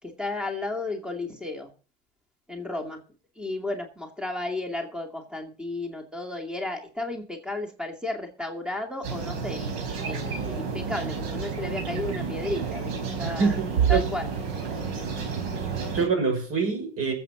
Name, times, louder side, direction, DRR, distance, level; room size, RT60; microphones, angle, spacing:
voice 1, 0.0-1.7 2.5-3.0 3.4-9.7 10.0-12.9 13.2-13.6 13.9-14.3 15.5-15.7, left 2 dB, 5° right, 2.4 m, -33 dB
sound 1, 9.0-16.1, right 6 dB, 75° right, 4.4 m, -30 dB
voice 2, 13.2-14.0 15.9-17.1, right 5 dB, 45° right, 5.8 m, -25 dB
21.0 x 8.0 x 3.8 m
supercardioid pair, 95°, 31 cm